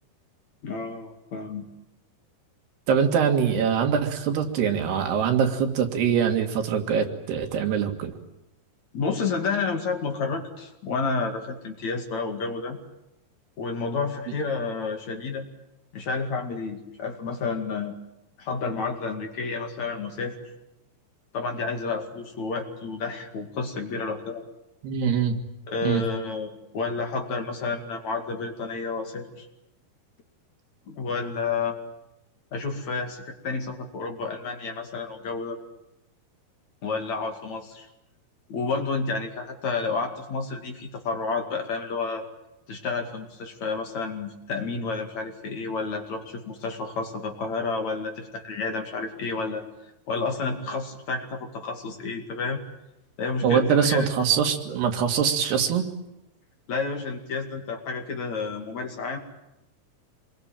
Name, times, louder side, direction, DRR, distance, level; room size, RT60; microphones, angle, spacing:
voice 1, 0.6-1.6 8.9-12.8 13.6-15.4 15.9-17.9 18.4-20.4 21.3-24.4 25.7-29.5 30.9-31.8 32.5-35.6 36.8-37.9 38.5-42.2 42.7-49.6 50.1-52.6 53.2-54.1 56.7-59.2, left 4 dB, 50° left, 4 dB, 3.3 m, -30 dB
voice 2, 2.9-8.1 24.8-25.4 25.8-26.0 53.4-55.9, right 7 dB, 80° right, 4 dB, 4.1 m, -23 dB
26.5 x 22.0 x 9.0 m, 0.90 s
omnidirectional pair, 4.6 m